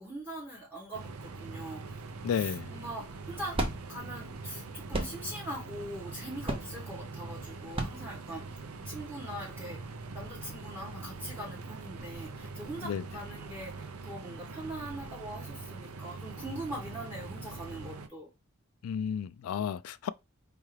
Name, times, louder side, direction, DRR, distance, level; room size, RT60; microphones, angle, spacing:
voice 1, 0.0-1.8 2.3-3.6 3.9-8.4 8.8-9.8 10.1-18.3, right 1 dB, 10° right, 1.1 m, -42 dB
sound 1, 0.9-18.1, right 3 dB, 85° right, 0.5 m, -43 dB
voice 2, 2.2-2.7 12.8-13.0 18.8-20.1, left 8 dB, 75° left, 0.3 m, -32 dB
sound 2, 3.0-8.9, right 1 dB, 25° right, 0.6 m, -37 dB
4.6 x 2.4 x 3.2 m
head